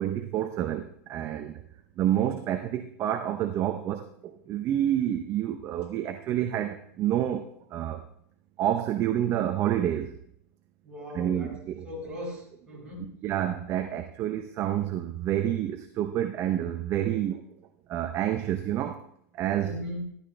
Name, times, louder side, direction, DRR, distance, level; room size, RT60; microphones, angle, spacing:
voice 1, 0.0-1.6 2.0-8.0 8.6-10.1 11.1-11.8 13.0-17.4 17.9-19.0 19.3-19.7, right 11 dB, 30° right, 8 dB, 0.7 m, -28 dB
voice 2, 10.8-11.6 11.8-13.2 19.6-20.0, left 1 dB, 10° right, -4 dB, 5.2 m, -38 dB
14.0 x 12.0 x 3.3 m, 0.70 s
supercardioid pair, 150°, 9 cm